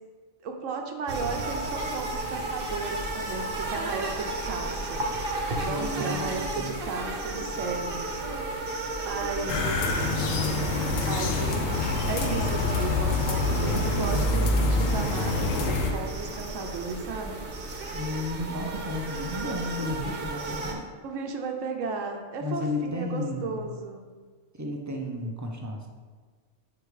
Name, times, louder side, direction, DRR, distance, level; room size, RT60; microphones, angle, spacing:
voice 1, 0.4-5.0 5.6-8.1 9.1-10.5 11.1-11.7 12.0-17.4 21.0-24.1, right 4 dB, 90° right, 3 dB, 1.1 m, -34 dB
sound 1, 1.1-20.7, right 2 dB, 50° right, 0.9 m, -33 dB
voice 2, 5.7-6.8 17.9-20.9 22.4-23.7 24.5-25.9, left 2 dB, 25° right, 1 dB, 0.3 m, -33 dB
sound 2, 9.5-15.9, left 2 dB, 90° left, 1.1 m, -26 dB
4.9 x 4.9 x 4.8 m, 1.5 s
omnidirectional pair, 1.3 m